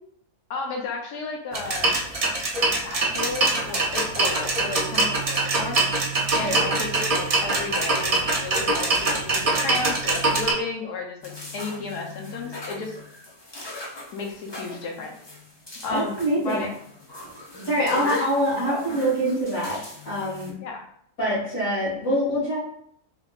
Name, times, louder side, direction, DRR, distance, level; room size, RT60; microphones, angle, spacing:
voice 1, 0.5-1.9 2.8-5.8 6.4-13.0 14.1-15.1 15.8-16.7 17.8-18.3 18.7-18.9 20.6-20.8, left 3 dB, 85° left, 1 dB, 1.4 m, -33 dB
sound 1, 1.5-10.5, right 2 dB, 60° right, 0.3 m, -23 dB
sound 2, 11.2-20.5, left 2 dB, 35° left, 0.4 m, -41 dB
voice 2, 15.9-16.6 17.6-20.5 21.2-22.6, equal, 55° left, -11 dB, 2.0 m, -25 dB
3.6 x 3.6 x 2.4 m, 0.67 s
omnidirectional pair, 1.7 m